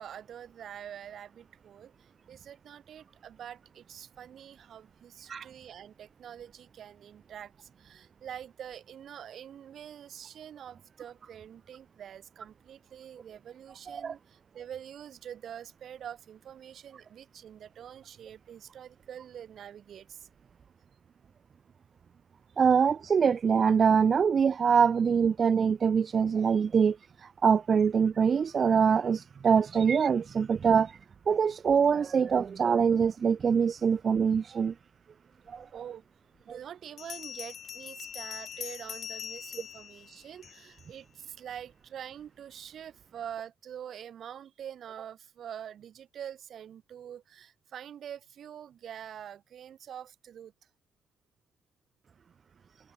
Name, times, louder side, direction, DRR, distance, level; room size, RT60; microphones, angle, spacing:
voice 1, 0.0-20.3 35.7-36.0 36.4-50.5, right 9 dB, 60° right, 6.1 m, -45 dB
voice 2, 22.6-26.9 27.4-30.9 31.3-34.7 36.5-36.6, right 6 dB, 40° right, 0.3 m, -24 dB
Bell, 35.8-35.9 37.0-40.9, left 8 dB, 55° left, 1.6 m, -42 dB
cardioid pair, 140°, 0 cm